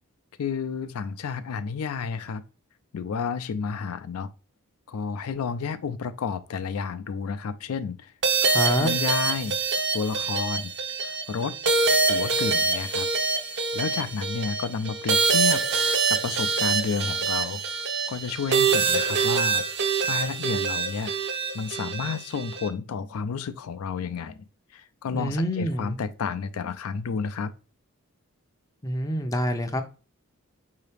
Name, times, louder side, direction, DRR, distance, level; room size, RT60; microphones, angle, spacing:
voice 1, 0.4-2.4 2.9-4.3 4.9-8.4 8.7-9.6 9.9-10.7 11.0-11.5 12.1-13.1 13.7-15.6 16.1-17.6 18.1-19.6 20.0-21.2 21.5-24.5 24.7-27.5, left 5 dB, 80° left, 0.4 m, -31 dB
sound 1, 8.2-22.7, right 4 dB, 50° right, 0.6 m, -25 dB
voice 2, 8.4-8.9 25.1-26.0 28.8-29.8, equal, 15° left, 0.4 m, -27 dB
4.8 x 2.8 x 3.3 m
head